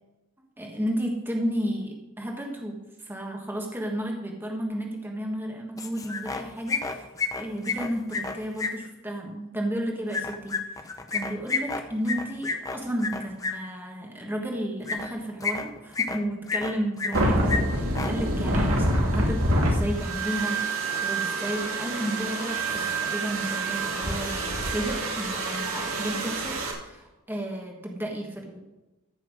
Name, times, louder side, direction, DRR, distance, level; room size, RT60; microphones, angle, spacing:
voice 1, 0.6-7.1 7.4-10.6 11.1-28.6, equal, 10° right, 1 dB, 1.3 m, -32 dB
sound 1, 5.8-6.4 6.7-8.7 10.1-13.5 14.8-15.1 15.4-16.2 16.5-17.2 17.5-17.6 17.9-18.1, left 5 dB, 15° left, 0.8 m, -29 dB
sound 2, 17.1-26.7, right 1 dB, 90° right, 2.4 m, -27 dB
14.0 x 5.8 x 6.2 m, 1.0 s
head